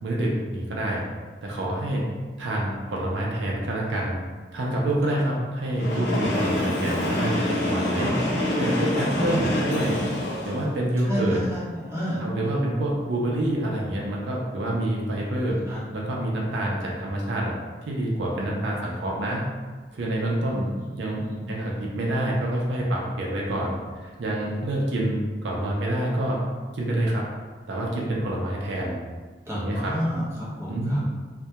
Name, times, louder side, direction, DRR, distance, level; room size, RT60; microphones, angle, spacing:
voice 1, 0.0-1.0 1.4-2.1 2.4-4.2 4.5-8.1 8.6-10.0 10.4-11.4 12.2-15.6 15.9-17.5 17.9-19.4 19.9-20.7 21.0-26.4 26.7-27.3 27.7-29.0 29.5-29.9 30.7-31.0, right 1 dB, 75° right, -3 dB, 0.4 m, -27 dB
Train, 5.7-10.7, left 1 dB, 75° left, 0.6 m, -26 dB
voice 2, 8.1-8.4 9.1-9.6 11.0-12.2 15.7-15.8 21.1-21.4 29.5-31.0, equal, 15° right, -9 dB, 0.7 m, -31 dB
2.2 x 2.1 x 2.7 m, 1.4 s
head